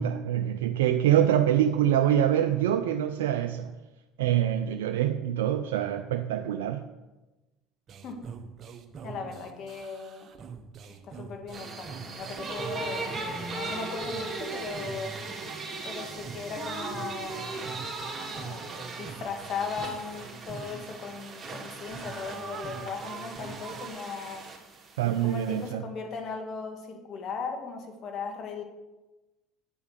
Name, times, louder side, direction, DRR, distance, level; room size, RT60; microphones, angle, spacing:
voice 1, 0.0-3.8 4.2-6.8 25.0-25.9, right 10 dB, 85° right, 7 dB, 0.4 m, -25 dB
sound 1, 7.9-23.9, right 6 dB, 45° right, 0.9 m, -44 dB
voice 2, 9.0-10.3 10.9-15.2 15.8-17.7 18.3-24.5 25.2-28.6, left 5 dB, 50° left, 4 dB, 2.0 m, -38 dB
sound 2, 11.5-25.7, right 3 dB, 25° right, 2.7 m, -38 dB
9.2 x 5.4 x 6.4 m, 1.1 s
hypercardioid pair, 80°, 0 cm